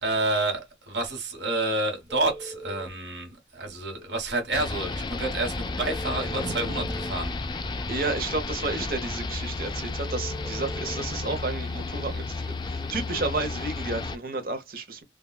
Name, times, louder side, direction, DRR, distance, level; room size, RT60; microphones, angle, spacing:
voice 1, 0.0-6.8 7.1-7.4, right 2 dB, 80° right, 1.4 m, -29 dB
sound 1, 2.1-3.0 5.8-7.2 10.0-11.0, right 1 dB, ahead, 1.2 m, -41 dB
sound 2, 4.5-14.2, left 3 dB, 25° left, 0.3 m, -32 dB
voice 2, 6.3-6.9 7.9-15.0, right 3 dB, 50° right, 0.9 m, -32 dB
3.5 x 2.2 x 2.3 m
head